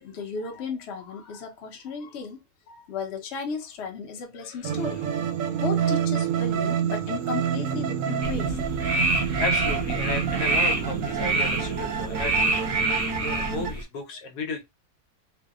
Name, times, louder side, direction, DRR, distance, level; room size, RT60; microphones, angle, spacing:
voice 1, 0.0-8.6, left 5 dB, 55° left, 0.8 m, -35 dB
sound 1, 4.6-13.7, right 8 dB, 70° right, 0.9 m, -28 dB
sound 2, 8.2-13.8, right 2 dB, 40° right, 0.5 m, -27 dB
voice 2, 9.0-14.6, left 3 dB, 80° left, 1.2 m, -34 dB
2.6 x 2.2 x 2.3 m
omnidirectional pair, 1.7 m